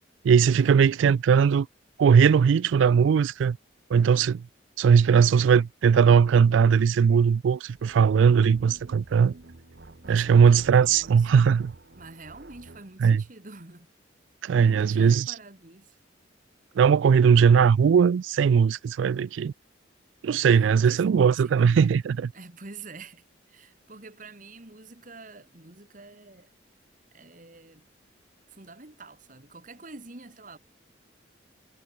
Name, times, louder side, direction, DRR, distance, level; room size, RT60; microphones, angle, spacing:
voice 1, 0.2-1.7 2.0-3.6 3.9-4.4 4.8-9.3 10.1-11.7 13.0-13.2 14.4-15.2 16.8-19.5 20.2-22.3, right 6 dB, 80° right, 0.3 m, -19 dB
sound 1, 7.7-12.9, right 2 dB, 60° right, 1.1 m, -49 dB
voice 2, 10.0-11.3 11.9-13.9 14.6-16.0 20.5-21.8 22.3-26.5 27.1-27.9 28.5-30.6, right 3 dB, 45° right, 1.8 m, -47 dB
head